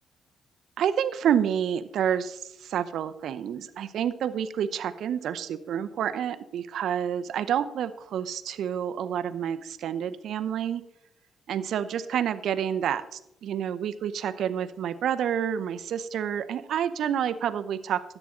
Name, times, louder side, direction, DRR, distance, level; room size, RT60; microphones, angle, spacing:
voice 1, 0.8-10.8 11.5-18.0, right 9 dB, 70° right, 12 dB, 0.7 m, -29 dB
13.0 x 9.0 x 3.8 m, 0.86 s
cardioid pair, 90°, 0 cm